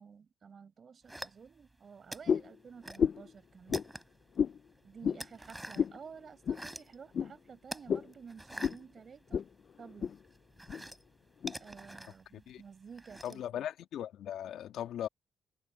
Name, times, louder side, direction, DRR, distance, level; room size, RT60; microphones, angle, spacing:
voice 1, 0.0-3.9 4.8-9.4 9.8-10.1 11.6-13.6, right 6 dB, 45° right, 4.6 m, -52 dB
sound 1, 1.1-1.7 2.1-3.1 3.4-4.3 4.7-6.0 6.3-7.0 7.6-9.7 10.0-13.5, right 1 dB, 10° right, 6.7 m, -46 dB
sound 2, 2.3-2.5 3.0-3.3 3.7-3.9 4.4-4.6 5.0-5.2 5.8-6.0 6.5-6.6 7.1-7.3 7.9-8.1 8.6-8.8 9.3-9.5 9.8-10.2 10.7-10.8 11.4-11.5, left 7 dB, 55° left, 0.4 m, -30 dB
voice 2, 13.2-15.1, left 10 dB, 75° left, 1.8 m, -39 dB
cardioid pair, 90°, 0 cm